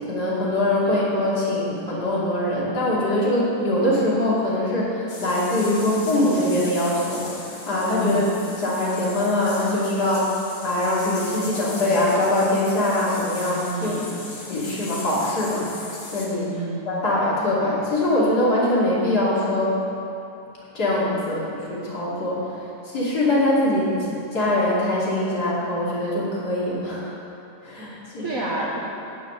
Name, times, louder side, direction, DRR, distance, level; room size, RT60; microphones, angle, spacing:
voice 1, 0.1-8.3 8.6-10.2 10.6-13.9 14.5-15.7 16.1-16.5 16.9-19.8 20.7-22.4 22.8-27.1 27.6-28.3, left 1 dB, 70° left, -7 dB, 3.3 m, -23 dB
sound 1, 5.1-16.3, left 2 dB, 40° left, 1.5 m, -38 dB
voice 2, 8.0-8.3 13.7-14.1 16.5-16.8 28.2-28.8, right 2 dB, 55° right, -5 dB, 1.6 m, -28 dB
12.5 x 5.8 x 8.8 m, 2.7 s
omnidirectional pair, 1.7 m